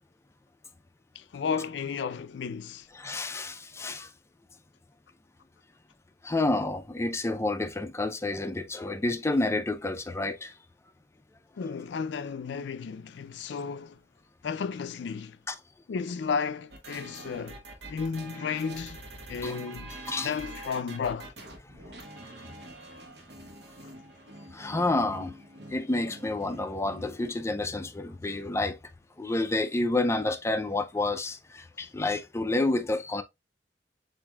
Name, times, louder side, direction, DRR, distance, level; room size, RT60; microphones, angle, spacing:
voice 1, 1.2-2.9 11.6-14.0 14.4-15.4 15.9-17.6 17.9-19.0 19.3-19.9 20.2-21.3, left 6 dB, 80° left, 0.4 m, -33 dB
voice 2, 2.9-4.1 6.2-10.5 15.5-15.6 19.4-19.6 20.0-20.4 21.6-21.8 24.5-25.4 25.7-28.8 29.2-33.2, left 2 dB, 15° left, 0.4 m, -29 dB
sound 1, 16.7-27.3, right 1 dB, 70° right, 1.0 m, -45 dB
7.2 x 2.6 x 2.3 m
head